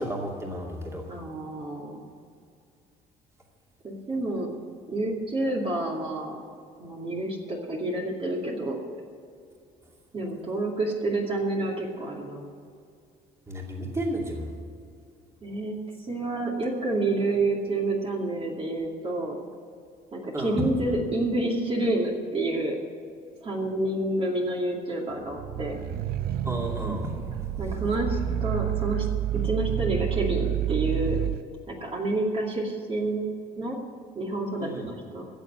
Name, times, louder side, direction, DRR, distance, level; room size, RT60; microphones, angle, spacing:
voice 1, 0.0-1.0 13.5-14.5 20.3-20.7 26.4-27.5 34.6-34.9, equal, 15° right, -1 dB, 2.6 m, -32 dB
voice 2, 1.1-2.0 3.8-4.5 4.9-6.4 6.8-8.8 10.1-12.5 15.4-15.7 16.0-19.4 20.1-22.8 23.4-25.8 27.6-29.1 29.4-31.2 31.7-33.3 33.6-33.8 34.1-35.3, right 2 dB, 35° right, -1 dB, 2.5 m, -29 dB
sound 1, 25.3-31.4, right 12 dB, 60° right, 0.6 m, -29 dB
15.5 x 7.1 x 9.2 m, 2.3 s
cardioid pair, 110°, 17 cm